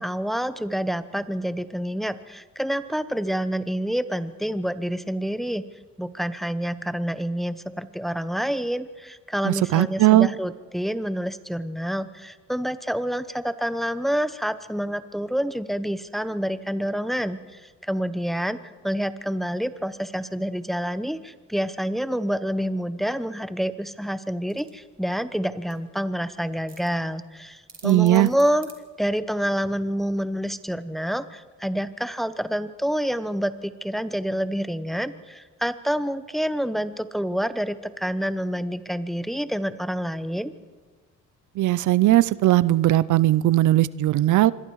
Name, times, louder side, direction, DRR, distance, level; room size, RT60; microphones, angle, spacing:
voice 1, 0.0-5.6 6.0-18.6 18.8-28.7 29.0-40.5, equal, ahead, 12 dB, 1.0 m, -28 dB
voice 2, 9.4-10.3 27.8-28.3 41.6-44.5, right 15 dB, 75° right, 18 dB, 0.7 m, -18 dB
sound 1, 24.5-29.5, right 4 dB, 30° right, 3.7 m, -52 dB
26.0 x 22.0 x 4.8 m, 1.4 s
cardioid pair, 90°, 30 cm